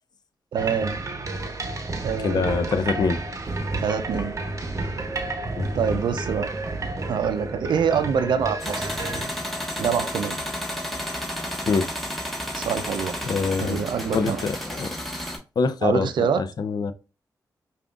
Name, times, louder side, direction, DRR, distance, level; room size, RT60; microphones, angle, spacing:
voice 1, 0.5-1.0 2.0-2.7 3.8-4.3 5.7-6.5 7.1-8.9 9.8-10.4 12.5-13.2 13.6-14.4 15.8-16.4, right 7 dB, 80° right, 0.4 m, -25 dB
sound 1, 0.6-9.3, right 2 dB, 40° right, 0.9 m, -31 dB
voice 2, 2.2-3.2 5.6-5.7 11.7-11.9 13.2-13.8 14.1-14.9 15.6-16.9, left 4 dB, 60° left, 0.5 m, -24 dB
sound 2, 8.6-15.4, equal, ahead, 1.4 m, -32 dB
5.0 x 2.4 x 2.3 m
supercardioid pair, 45°, 8 cm